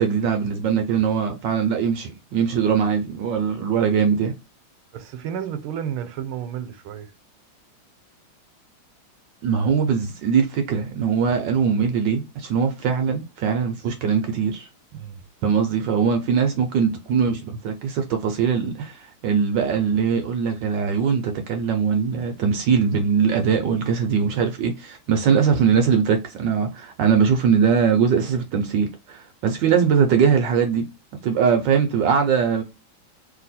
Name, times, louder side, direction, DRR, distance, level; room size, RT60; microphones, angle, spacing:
voice 1, 0.0-4.3 9.4-14.7 15.4-30.9 31.1-32.6, right 6 dB, 70° right, 1.2 m, -21 dB
voice 2, 4.9-7.1 14.9-15.2, right 9 dB, 90° right, 1.5 m, -32 dB
3.3 x 2.9 x 4.0 m
omnidirectional pair, 2.3 m